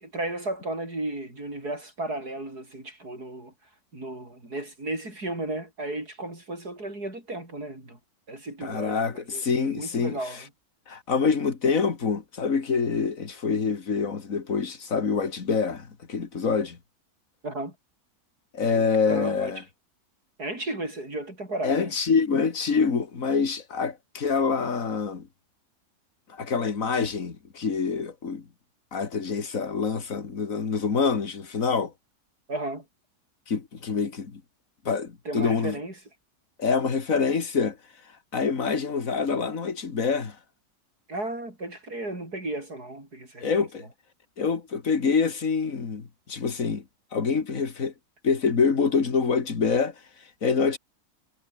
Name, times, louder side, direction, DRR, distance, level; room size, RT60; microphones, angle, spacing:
voice 1, 0.0-3.5 3.9-8.0 8.3-10.4 17.4-17.7 18.7-19.6 20.4-21.9 32.5-32.8 35.2-35.9 41.1-43.7, right 2 dB, 80° right, 8.6 m, -34 dB
voice 2, 8.6-10.2 10.9-16.8 18.5-19.6 21.6-25.3 26.3-28.4 28.9-31.9 33.5-34.4 34.9-35.8 36.6-37.8 38.3-40.4 43.4-43.9 44.4-46.8 47.1-47.9 48.2-49.9 50.4-50.8, left 5 dB, 60° left, 2.6 m, -26 dB
omnidirectional pair, 1.6 m